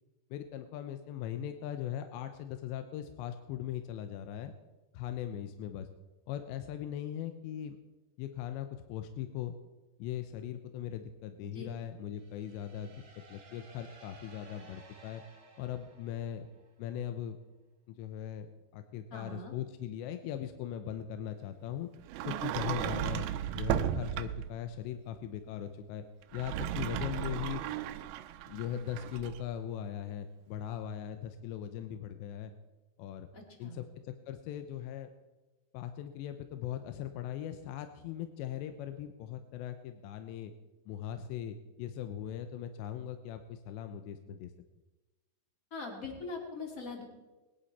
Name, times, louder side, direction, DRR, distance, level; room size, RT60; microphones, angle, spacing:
voice 1, 0.3-4.5 4.9-5.9 6.3-7.8 8.2-9.6 10.0-12.9 13.3-15.2 15.6-16.5 16.8-17.4 17.9-18.5 18.7-21.9 22.2-23.3 23.5-26.0 26.3-27.6 28.5-32.5 33.0-33.3 33.6-35.1 35.7-40.5 40.9-44.5, left 10 dB, 85° left, 8 dB, 3.0 m, -39 dB
sound 1, 12.1-16.8, right 3 dB, 45° right, 2.4 m, -57 dB
voice 2, 19.1-19.5 33.3-33.8 45.7-47.0, left 3 dB, 30° left, 1 dB, 1.8 m, -42 dB
Sliding door, 22.1-24.6 26.2-29.4, right 11 dB, 90° right, 2.1 m, -35 dB
21.0 x 11.0 x 4.2 m, 1.1 s
omnidirectional pair, 5.0 m